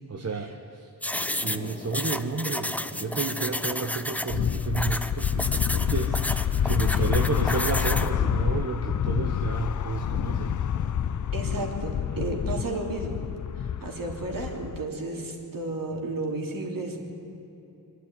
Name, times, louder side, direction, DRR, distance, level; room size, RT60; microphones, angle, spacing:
voice 1, 0.1-0.9 1.4-10.6, right 4 dB, 40° right, 3 dB, 1.2 m, -31 dB
sound 1, 1.0-8.1, left 1 dB, 5° left, 0.7 m, -31 dB
sound 2, 1.1-13.4, left 2 dB, 20° left, 1.2 m, -45 dB
sound 3, 4.3-14.8, left 9 dB, 50° left, 0.5 m, -27 dB
voice 2, 11.3-13.2 13.5-17.0, right 2 dB, 55° right, 0 dB, 3.3 m, -33 dB
23.5 x 11.5 x 9.7 m, 2.9 s
cardioid pair, 75°, 40 cm